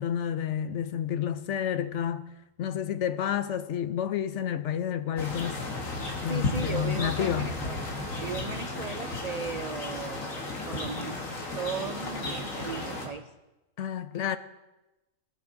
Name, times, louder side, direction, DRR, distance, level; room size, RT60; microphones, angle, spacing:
voice 1, 0.0-2.2 2.6-5.6 6.2-7.5 13.8-14.4, left 9 dB, 70° left, 1.0 m, -30 dB
sound 1, 5.2-13.1, left 2 dB, 85° left, 2.2 m, -34 dB
voice 2, 6.3-7.8 8.2-10.3 10.7-11.3 11.5-13.3, right 5 dB, 90° right, 0.3 m, -36 dB
18.5 x 9.8 x 3.9 m
omnidirectional pair, 1.3 m